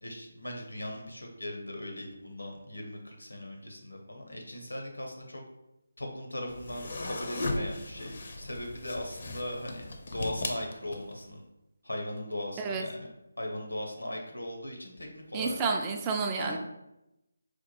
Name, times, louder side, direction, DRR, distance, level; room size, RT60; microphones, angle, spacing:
voice 1, 0.0-5.4 6.0-11.4 11.8-13.1 13.4-15.6 16.4-16.6, left 1 dB, 90° left, 2 dB, 0.8 m, -39 dB
sound 1, 6.5-11.3, left 2 dB, 50° left, 0.5 m, -37 dB
voice 2, 15.3-16.6, right 4 dB, 15° right, 2 dB, 0.3 m, -30 dB
4.2 x 2.2 x 2.8 m, 0.90 s
figure-of-eight pair, 155°, 0 cm